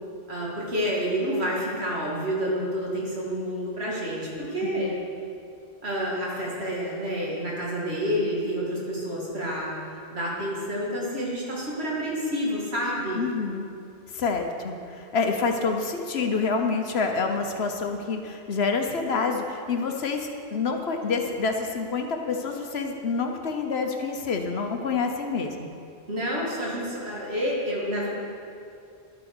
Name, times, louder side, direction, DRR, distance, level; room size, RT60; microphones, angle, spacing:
voice 1, 0.3-4.9 5.8-9.7 10.1-13.2 26.1-28.1, equal, 65° right, -4 dB, 2.7 m, -29 dB
voice 2, 4.6-5.0 13.2-13.7 14.1-25.7, left 4 dB, 65° left, 4 dB, 1.2 m, -27 dB
11.0 x 8.6 x 6.2 m, 2.5 s
omnidirectional pair, 1.2 m